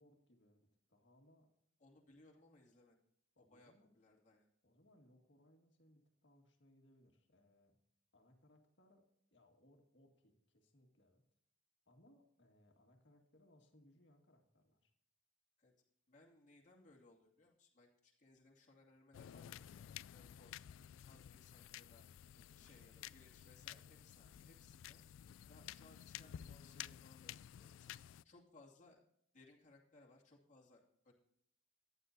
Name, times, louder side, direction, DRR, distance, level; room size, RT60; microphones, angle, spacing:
voice 1, 0.0-1.5 3.3-4.0 4.6-7.8 8.1-9.1 9.3-11.2 11.9-14.9 21.1-21.4 22.4-22.7 25.3-25.6, left 1 dB, 65° left, 3 dB, 2.0 m, -70 dB
voice 2, 1.8-3.0 3.4-4.5 15.6-15.7 16.1-20.7 21.1-22.0 22.5-25.0 25.4-27.9 28.2-29.0 29.3-31.1, left 2 dB, 40° left, -2 dB, 2.5 m, -66 dB
sound 1, 19.1-28.2, left 11 dB, 85° left, 0.3 m, -53 dB
14.5 x 10.0 x 2.7 m, 0.73 s
head